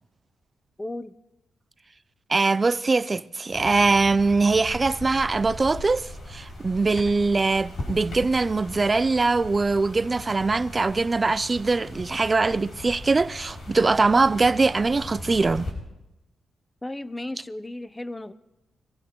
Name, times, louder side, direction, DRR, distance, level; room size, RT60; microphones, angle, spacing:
voice 1, 0.8-1.1 16.8-18.3, left 1 dB, 15° left, 0.7 m, -34 dB
voice 2, 2.3-15.7, right 3 dB, 30° right, 0.5 m, -22 dB
sound 1, 3.5-15.7, left 1 dB, 60° left, 6.3 m, -39 dB
25.5 x 16.0 x 3.1 m
cardioid pair, 70°, 0 cm